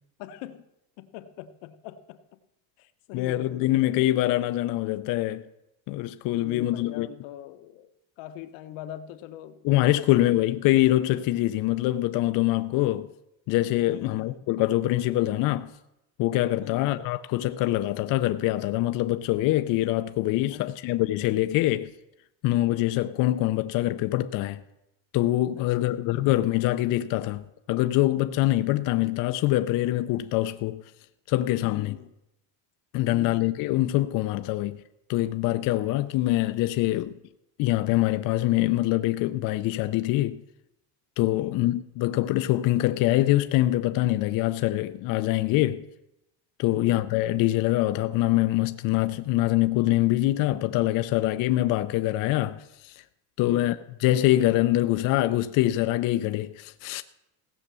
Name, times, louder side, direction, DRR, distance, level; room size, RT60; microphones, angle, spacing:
voice 1, 0.2-0.7 1.0-2.4 2.8-4.1 6.4-7.9 8.2-9.7 10.1-10.4 13.9-14.5 16.6-17.1 20.5-20.8 25.6-26.0 31.6-32.1 33.1-33.5 41.3-41.7 46.7-46.9 53.4-53.8, left 12 dB, 80° left, 1.2 m, -42 dB
voice 2, 3.1-5.4 5.9-7.1 9.6-13.1 13.5-15.7 16.2-21.9 22.4-24.6 25.1-30.8 31.3-32.0 32.9-34.8 35.1-37.1 37.6-40.4 41.2-45.9 46.6-53.0 53.4-57.0, left 16 dB, 45° left, 0.5 m, -24 dB
16.5 x 7.2 x 6.7 m
cardioid pair, 165°, 47 cm